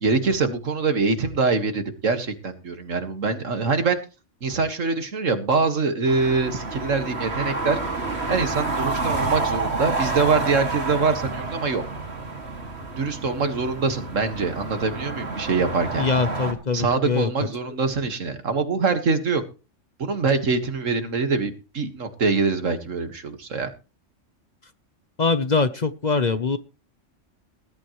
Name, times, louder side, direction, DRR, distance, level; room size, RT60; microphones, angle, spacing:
voice 1, 0.0-4.0 4.4-7.8 8.3-11.8 13.0-16.1 16.7-19.4 20.0-23.7, right 4 dB, 80° right, 8 dB, 2.1 m, -24 dB
sound 1, 6.0-16.5, right 3 dB, 55° right, 2.6 m, -29 dB
voice 2, 16.0-17.3 25.2-26.6, left 4 dB, 40° left, 12 dB, 0.9 m, -23 dB
20.0 x 12.0 x 3.1 m, 0.32 s
omnidirectional pair, 1.3 m